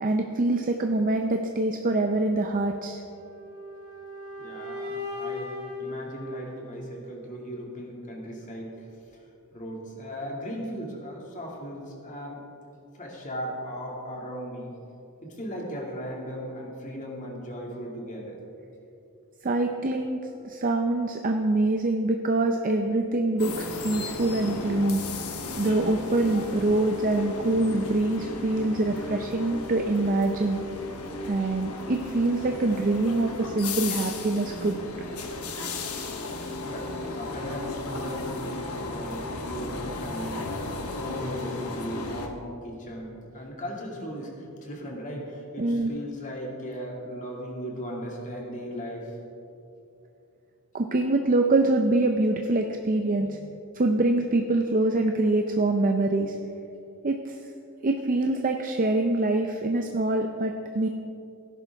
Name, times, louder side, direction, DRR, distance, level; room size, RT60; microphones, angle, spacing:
voice 1, 0.0-3.0 19.4-25.0 25.6-30.6 31.3-34.8 45.6-45.9 50.7-53.4 53.7-56.4 57.0-57.4 57.8-60.9, right 2 dB, 40° right, 4 dB, 0.6 m, -25 dB
sound 1, 3.1-7.1, left 2 dB, 65° right, 2.3 m, -38 dB
voice 2, 4.4-8.9 9.5-12.4 12.9-14.7 15.2-18.4 36.6-40.5 41.0-49.2, equal, 35° left, -2 dB, 2.3 m, -37 dB
sound 2, 23.4-42.3, left 2 dB, 80° left, 1.1 m, -35 dB
17.0 x 11.0 x 3.5 m, 2.8 s
head